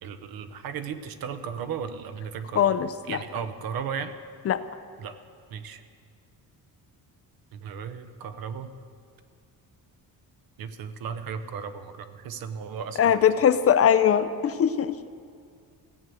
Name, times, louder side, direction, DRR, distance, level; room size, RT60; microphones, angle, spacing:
voice 1, 0.0-2.7 3.1-4.1 5.0-5.1 5.5-5.8 7.5-8.7 10.6-13.1, right 7 dB, 70° right, 10 dB, 0.9 m, -35 dB
voice 2, 2.6-3.2 4.5-4.6 13.0-15.0, left 8 dB, 40° left, 12 dB, 0.5 m, -21 dB
16.0 x 7.9 x 6.8 m, 2.3 s
cardioid pair, 155°, 37 cm